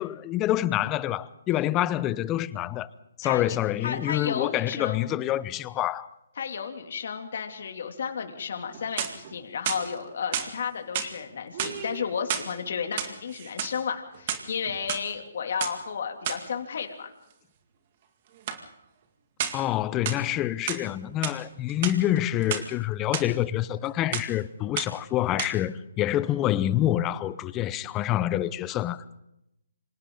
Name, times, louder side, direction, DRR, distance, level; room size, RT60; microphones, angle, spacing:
voice 1, 0.0-2.9 3.2-6.1 19.5-29.0, left 13 dB, 20° left, 0.8 m, -27 dB
voice 2, 3.2-3.6 3.8-5.1 6.4-17.1, left 6 dB, 60° left, 2.9 m, -33 dB
sound 1, 8.7-9.3 9.7-10.5 10.9-11.2 11.5-12.5 12.9-13.8 14.1-15.0 15.6-15.8 16.3-16.5 18.5-18.6 19.4-19.7 20.1-20.9 21.2-21.4 21.7-22.7 23.1-23.3 23.6-23.9 24.1-24.4 24.8-25.1 25.4-25.5, right 9 dB, 40° right, 2.2 m, -32 dB
28.5 x 26.0 x 4.0 m
hypercardioid pair, 155°, 0 cm